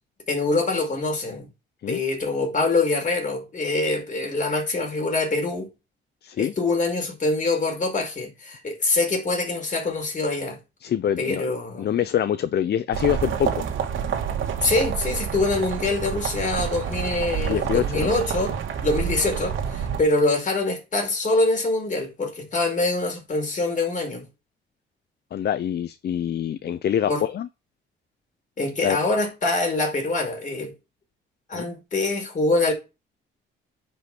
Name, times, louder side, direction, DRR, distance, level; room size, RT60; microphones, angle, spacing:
voice 1, 0.3-1.5 1.9-5.7 6.4-10.6 11.2-12.0 14.6-18.5 18.8-24.2 26.6-26.7 27.1-27.2 28.6-30.7 31.5-32.7, left 2 dB, 40° left, 5.1 m, -24 dB
voice 2, 6.2-6.5 10.8-11.4 11.8-13.6 17.5-18.1 25.3-27.5 28.8-29.0 31.5-31.7, left 10 dB, 55° left, 0.8 m, -25 dB
sound 1, 12.9-20.0, right 8 dB, 80° right, 2.4 m, -28 dB
10.0 x 5.5 x 6.1 m
cardioid pair, 90°, 20 cm